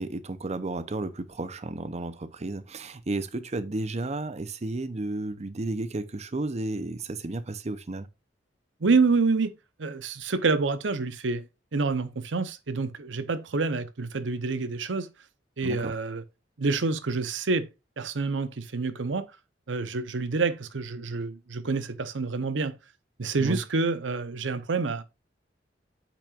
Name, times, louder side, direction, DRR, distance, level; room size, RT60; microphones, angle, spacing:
voice 1, 0.0-8.1 15.6-15.9 23.3-23.6, right 2 dB, 35° right, 0.6 m, -33 dB
voice 2, 8.8-9.5 9.8-11.5 11.7-15.1 15.6-16.2 16.6-17.7 18.0-19.3 19.7-22.8 23.2-25.0, right 4 dB, 90° right, 0.8 m, -27 dB
8.6 x 6.0 x 2.4 m
head